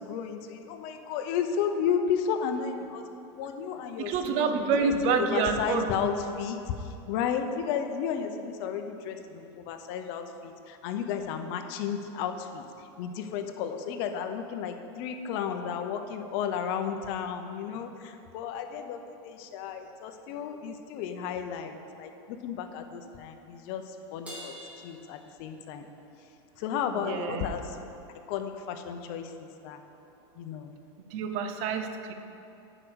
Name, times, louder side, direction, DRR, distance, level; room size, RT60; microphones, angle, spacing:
voice 1, 0.0-3.0 3.3-12.6 13.0-24.5 24.8-25.9 26.6-27.8 28.3-29.8 30.4-30.7, left 7 dB, 60° left, 6 dB, 0.8 m, -33 dB
voice 2, 4.0-6.1 27.0-27.5 31.1-32.1, right 5 dB, 55° right, 7 dB, 0.8 m, -28 dB
Crash cymbal, 24.3-26.0, equal, 10° right, 2.0 m, -46 dB
9.8 x 5.0 x 6.3 m, 2.8 s
supercardioid pair, 140°, 14 cm